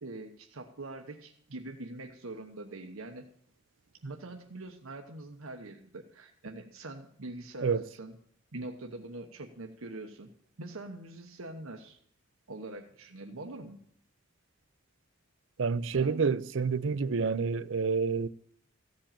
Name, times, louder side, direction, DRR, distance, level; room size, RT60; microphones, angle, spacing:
voice 1, 0.0-3.2 4.0-8.2 8.5-10.3 10.6-12.0 12.5-13.8 15.9-16.2, right 2 dB, 85° right, 1.1 m, -43 dB
voice 2, 15.6-18.3, right 5 dB, 65° right, 0.5 m, -28 dB
15.5 x 5.4 x 8.7 m
head